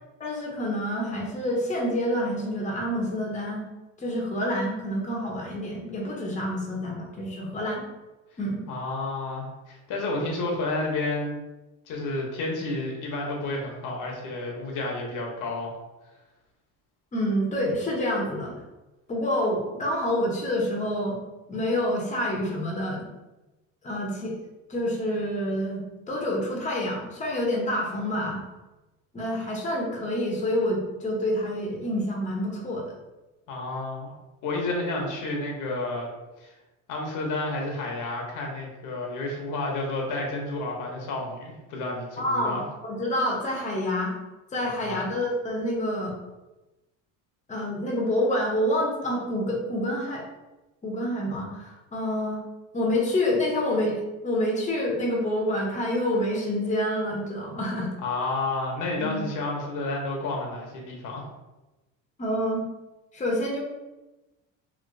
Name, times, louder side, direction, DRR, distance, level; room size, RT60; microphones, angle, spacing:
voice 1, 0.2-3.6 4.0-7.8 8.4-8.6 17.1-18.5 19.1-21.2 21.5-23.0 23.8-24.3 24.7-25.8 26.1-28.4 29.1-32.8 42.2-42.6 42.8-44.1 44.5-46.2 47.5-50.2 50.8-52.4 52.7-57.9 59.0-59.2 62.2-62.6 63.1-63.6, left 1 dB, 20° left, -1 dB, 0.8 m, -27 dB
voice 2, 8.7-11.4 11.9-15.7 33.5-34.1 34.4-36.1 36.4-36.5 36.9-42.6 44.8-45.0 58.0-61.3, left 2 dB, 65° left, 0 dB, 0.9 m, -30 dB
3.1 x 2.8 x 2.6 m, 1.1 s
supercardioid pair, 100°, 34 cm